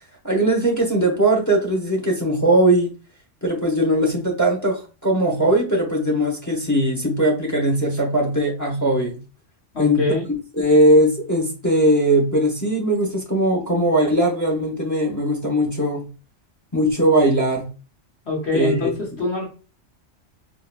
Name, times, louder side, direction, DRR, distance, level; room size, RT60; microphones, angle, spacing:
voice 1, 0.2-2.9 3.4-9.2 9.8-10.1 10.6-16.1 16.7-17.7 18.5-18.9, right 1 dB, 15° left, 1 dB, 0.8 m, -19 dB
voice 2, 9.7-10.3 18.2-19.4, left 3 dB, 60° left, -2 dB, 1.6 m, -24 dB
3.9 x 2.8 x 2.3 m, 0.35 s
omnidirectional pair, 1.3 m